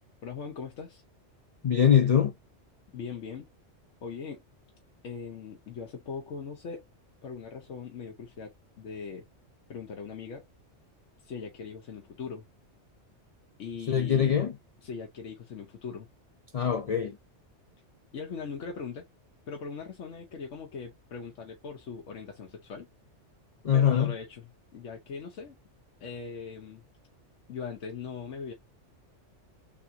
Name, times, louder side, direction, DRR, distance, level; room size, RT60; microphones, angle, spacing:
voice 1, 0.2-1.0 2.9-3.5 4.0-4.4 5.0-6.8 7.2-9.3 9.7-10.4 11.2-12.5 13.6-14.4 14.8-16.1 18.1-19.1 19.5-22.9 23.7-25.6 26.0-26.8 27.5-28.5, left 5 dB, 90° left, 1.2 m, -40 dB
voice 2, 1.6-2.3 13.9-14.6 16.5-17.2 23.6-24.1, left 8 dB, 70° left, 0.3 m, -23 dB
3.6 x 3.6 x 2.6 m
omnidirectional pair, 1.2 m